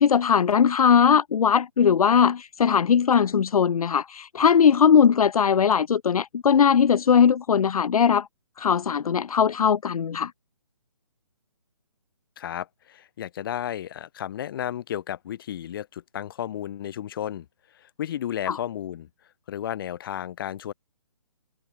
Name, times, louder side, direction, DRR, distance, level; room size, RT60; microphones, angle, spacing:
voice 1, 0.0-8.3 8.6-10.3 18.5-18.6, left 7 dB, 85° left, 0.5 m, -19 dB
voice 2, 12.4-17.5 17.8-19.1 19.5-20.7, left 10 dB, 40° left, 6.6 m, -33 dB
hypercardioid pair, 160°, 18 cm